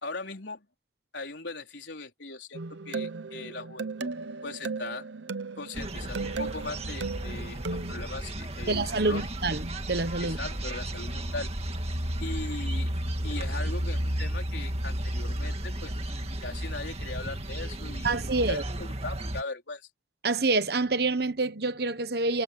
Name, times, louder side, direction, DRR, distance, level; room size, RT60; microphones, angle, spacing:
voice 1, 0.0-0.7 1.1-4.1 4.4-5.1 5.6-9.3 10.2-11.5 12.2-12.9 13.2-15.9 16.2-19.9, left 3 dB, 75° left, 4.1 m, -39 dB
sound 1, 2.5-8.0, right 4 dB, 75° right, 0.8 m, -36 dB
sound 2, 5.7-19.4, right 1 dB, 35° right, 2.1 m, -33 dB
voice 2, 8.7-10.4 18.0-18.6 20.2-22.4, right 3 dB, 55° right, 1.2 m, -27 dB
head